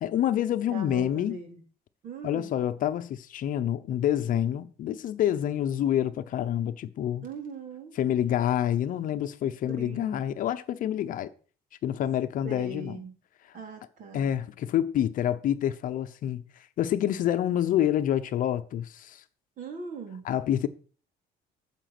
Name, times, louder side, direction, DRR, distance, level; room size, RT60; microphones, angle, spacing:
voice 1, 0.0-1.4 2.2-7.2 8.0-11.3 11.8-13.0 14.1-16.4 16.8-19.2 20.2-20.7, left 11 dB, 50° left, 0.8 m, -27 dB
voice 2, 0.7-1.6 2.0-2.5 7.2-7.9 9.7-10.2 12.4-13.1 13.5-14.3 19.6-20.3, right 4 dB, 50° right, 3.8 m, -40 dB
14.5 x 7.4 x 6.0 m
cardioid pair, 170°, 17 cm